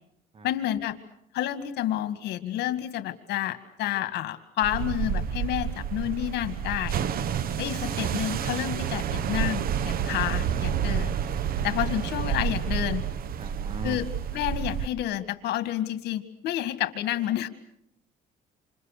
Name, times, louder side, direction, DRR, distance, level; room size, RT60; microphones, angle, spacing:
voice 1, 0.4-1.0 1.3-6.9 7.6-11.2 11.6-13.1 13.8-17.5, left 12 dB, 80° left, 11 dB, 2.1 m, -30 dB
sound 1, 4.6-14.9, right 8 dB, 60° right, 1.2 m, -29 dB
voice 2, 7.7-8.0 13.4-14.0, right 3 dB, 35° right, 11 dB, 1.9 m, -38 dB
28.0 x 27.0 x 6.7 m, 0.70 s
cardioid pair, 110°, 17 cm